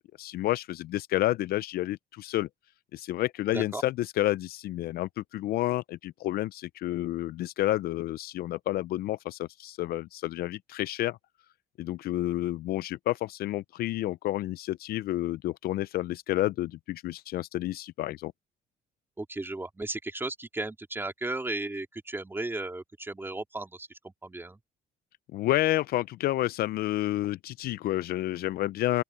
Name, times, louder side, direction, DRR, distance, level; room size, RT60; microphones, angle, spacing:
voice 1, 0.2-2.5 2.9-11.2 11.8-18.3 25.3-29.0, left 15 dB, 65° left, 0.5 m, -30 dB
voice 2, 19.2-24.6, right 2 dB, 15° right, 3.4 m, -35 dB
open air
cardioid pair, 110°, 17 cm